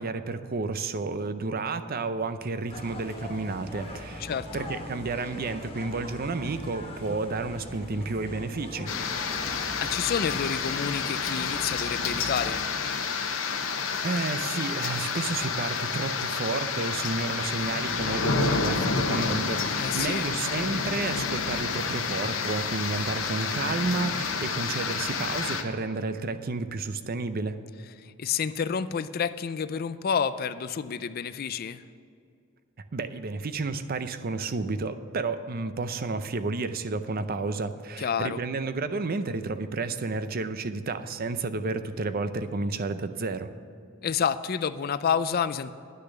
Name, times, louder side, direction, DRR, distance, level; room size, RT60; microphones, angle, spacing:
voice 1, 0.0-4.3 4.5-8.9 14.0-27.6 32.9-43.5, right 3 dB, 50° right, 11 dB, 0.6 m, -31 dB
sound 1, 2.7-12.6, left 1 dB, 30° left, 1.3 m, -41 dB
voice 2, 4.2-4.7 9.5-12.7 19.8-20.3 28.0-31.8 38.0-38.4 44.0-45.7, left 7 dB, 50° left, 14 dB, 0.4 m, -29 dB
sound 2, 8.9-25.6, left 5 dB, 80° left, 1.0 m, -29 dB
10.0 x 6.6 x 8.8 m, 2.3 s
head